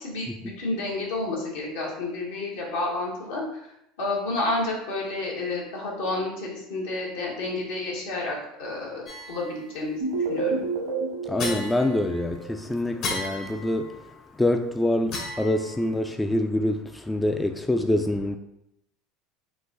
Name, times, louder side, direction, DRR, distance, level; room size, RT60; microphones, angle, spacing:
voice 1, 0.0-3.6 4.0-10.6, left 2 dB, 80° left, 1.4 m, -30 dB
sound 1, 9.1-9.8 11.4-12.5 13.0-14.1 15.1-16.1, left 2 dB, 55° left, 1.1 m, -35 dB
sound 2, 10.0-12.9, right 4 dB, 80° right, 1.2 m, -30 dB
voice 2, 11.3-13.9 14.4-18.4, left 1 dB, 10° left, 0.3 m, -25 dB
3.9 x 2.6 x 3.8 m
hypercardioid pair, 85°, 0 cm